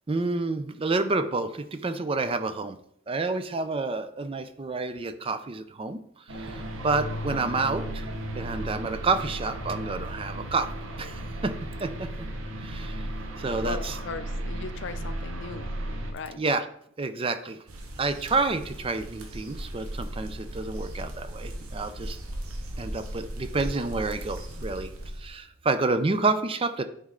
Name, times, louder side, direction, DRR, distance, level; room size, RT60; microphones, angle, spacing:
voice 1, 0.1-2.8 3.1-6.0 6.3-8.1 8.4-10.7 11.0-11.5 11.8-12.1 12.6-13.1 13.4-13.9 16.4-16.6 17.0-17.6 18.0-22.2 22.8-24.9 25.2-26.8, right 3 dB, 25° right, 10 dB, 0.4 m, -29 dB
sound 1, 6.3-16.1, right 1 dB, 65° right, 0.9 m, -35 dB
voice 2, 13.6-15.7 16.1-16.4, left 4 dB, 55° left, 11 dB, 0.5 m, -37 dB
sound 2, 17.7-25.3, equal, 85° right, 1.2 m, -37 dB
9.2 x 4.2 x 3.8 m, 0.69 s
head